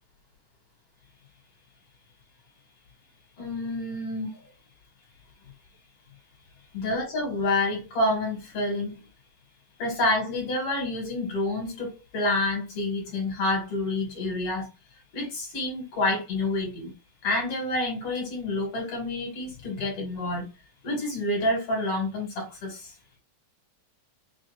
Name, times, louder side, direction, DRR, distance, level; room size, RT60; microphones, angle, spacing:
voice 1, 3.4-4.4 6.7-9.0 9.8-14.7 15.1-16.9 17.2-20.5 20.8-22.9, left 2 dB, 50° left, 3.3 m, -28 dB
6.2 x 3.2 x 2.6 m
omnidirectional pair, 3.6 m